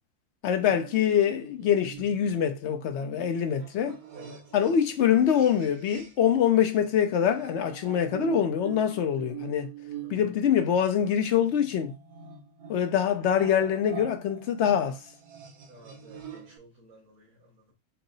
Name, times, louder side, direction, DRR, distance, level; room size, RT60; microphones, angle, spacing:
voice 1, 0.4-4.0 4.5-9.7 10.1-11.9 12.7-15.0, left 9 dB, 65° left, 0.7 m, -24 dB
sound 1, 0.6-6.3 6.6-16.6, right 8 dB, 90° right, 1.4 m, -45 dB
voice 2, 4.1-4.5 9.2-9.3 10.0-10.3 15.7-17.6, right 2 dB, 55° right, 1.6 m, -53 dB
4.5 x 2.0 x 3.8 m
omnidirectional pair, 1.6 m